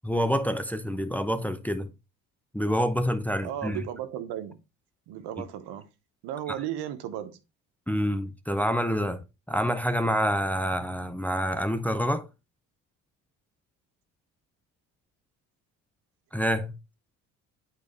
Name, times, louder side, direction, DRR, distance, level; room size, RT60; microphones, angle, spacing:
voice 1, 0.0-1.9 2.5-3.8 7.9-9.2 9.5-12.3 16.3-16.7, equal, 5° left, 0.7 m, -27 dB
voice 2, 3.4-4.6 5.1-5.9 6.2-7.4, right 11 dB, 70° right, 1.0 m, -35 dB
8.4 x 4.1 x 3.2 m
hypercardioid pair, 60°, 41 cm